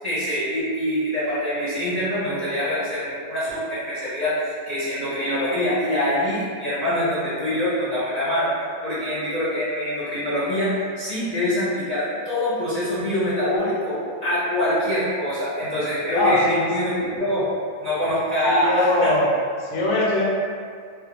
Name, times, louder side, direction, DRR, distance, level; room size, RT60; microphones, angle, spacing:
voice 1, 0.0-17.5 17.8-19.1, left 1 dB, 40° left, -12 dB, 0.7 m, -24 dB
voice 2, 16.1-16.6 18.4-19.3 19.6-20.2, left 1 dB, 80° left, -4 dB, 0.9 m, -21 dB
2.4 x 2.1 x 2.8 m, 2.1 s
omnidirectional pair, 1.2 m